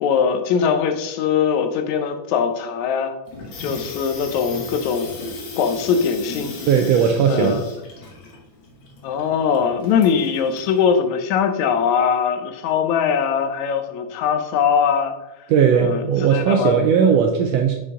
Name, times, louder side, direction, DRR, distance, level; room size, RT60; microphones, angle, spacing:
voice 1, 0.0-3.2 3.6-5.1 5.6-6.5 7.3-7.6 9.0-15.1 15.8-16.8, left 7 dB, 75° left, 7 dB, 2.0 m, -21 dB
Water tap faucet / Sink (filling or washing), 3.3-10.8, left 3 dB, 55° left, 1.4 m, -36 dB
voice 2, 6.7-7.6 15.5-17.8, right 7 dB, 85° right, 4 dB, 1.4 m, -17 dB
6.9 x 5.1 x 3.6 m, 0.97 s
omnidirectional pair, 3.5 m